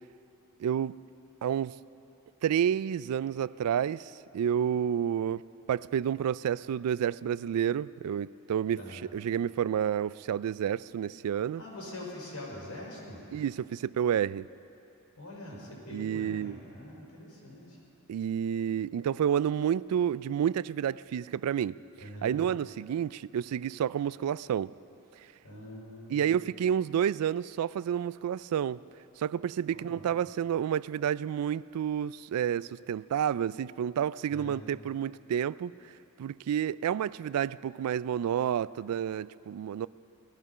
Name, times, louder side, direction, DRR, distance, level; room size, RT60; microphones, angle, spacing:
voice 1, 0.6-1.0 1.4-1.8 2.4-11.6 13.3-14.5 15.9-16.6 18.1-21.8 22.2-24.7 26.1-28.8 29.2-35.9 36.2-39.9, right 9 dB, 80° right, 18 dB, 0.3 m, -30 dB
voice 2, 11.5-13.2 15.1-17.8 22.0-22.4 25.4-26.4 29.8-30.0 34.3-34.6, left 1 dB, 85° left, -4 dB, 5.0 m, -44 dB
18.5 x 14.0 x 5.6 m, 2.7 s
head